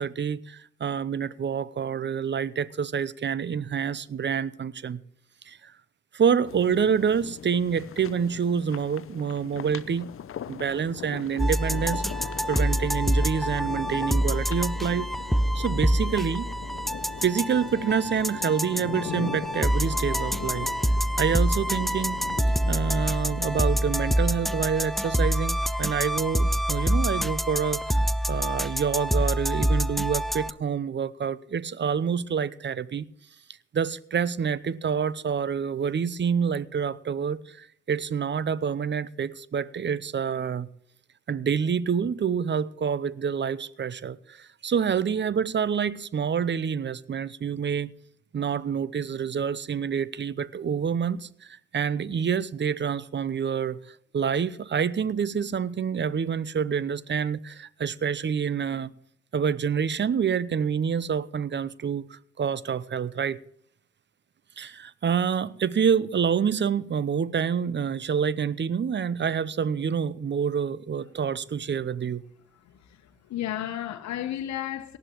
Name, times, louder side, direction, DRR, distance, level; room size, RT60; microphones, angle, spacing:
voice 1, 0.0-5.0 5.5-5.7 6.1-10.1 10.5-12.0 12.5-15.1 15.5-16.5 17.2-20.7 21.2-22.2 22.7-28.0 28.3-33.0 33.7-40.7 41.3-47.9 48.3-53.8 54.1-58.9 59.3-63.4 64.6-72.2, right 7 dB, 35° right, 0.7 m, -27 dB
sound 1, 6.4-24.7, left 9 dB, 45° left, 0.7 m, -40 dB
sound 2, 11.4-30.5, equal, ahead, 0.4 m, -26 dB
voice 2, 72.6-75.0, left 12 dB, 65° left, 1.1 m, -33 dB
18.5 x 13.0 x 3.1 m
hypercardioid pair, 45°, 30 cm